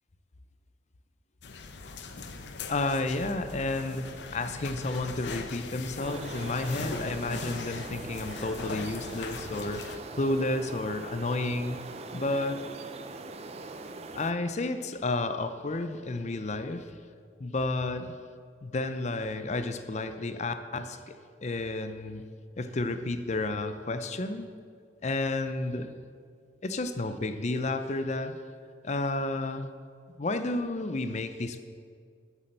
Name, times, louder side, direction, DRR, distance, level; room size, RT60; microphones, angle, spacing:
sound 1, 1.4-10.0, left 4 dB, 80° left, 0.7 m, -40 dB
voice 1, 2.7-11.8 12.1-12.7 14.1-16.8 17.4-18.1 18.6-21.2 21.4-22.2 22.6-24.5 25.0-25.9 26.6-28.4 28.8-29.7 30.2-31.6, left 2 dB, 40° left, 10 dB, 0.5 m, -31 dB
sound 2, 6.0-14.3, right 3 dB, 35° right, 0.5 m, -42 dB
8.6 x 7.2 x 6.6 m, 2.1 s
head